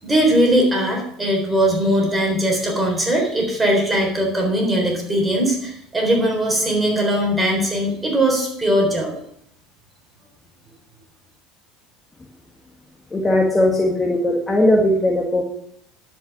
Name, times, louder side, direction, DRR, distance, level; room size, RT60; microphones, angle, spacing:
voice 1, 0.0-9.2, right 1 dB, 15° right, 0 dB, 3.8 m, -20 dB
voice 2, 13.1-15.4, left 1 dB, 15° left, 0 dB, 1.7 m, -18 dB
11.5 x 5.8 x 6.0 m, 0.71 s
supercardioid pair, 105°, 0 cm